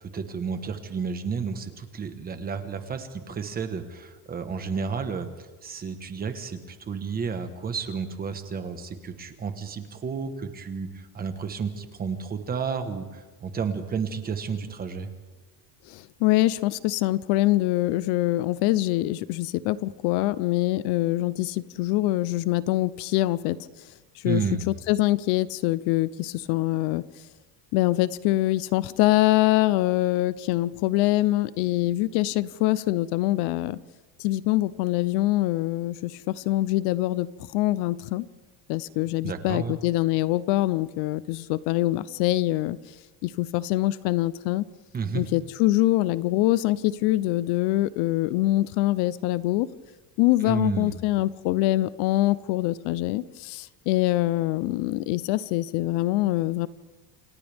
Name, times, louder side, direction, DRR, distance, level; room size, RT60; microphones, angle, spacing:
voice 1, 0.0-5.3 5.6-15.1 24.2-24.7 39.2-39.7 44.9-45.3 50.4-50.9, right 5 dB, 20° right, 8 dB, 1.3 m, -31 dB
voice 2, 15.9-23.7 24.2-27.0 27.7-33.8 34.2-38.3 38.7-42.8 43.2-44.6 45.1-49.7 50.2-56.7, left 17 dB, 65° left, 17 dB, 0.7 m, -24 dB
28.5 x 27.5 x 3.5 m, 1.2 s
cardioid pair, 175°, 44 cm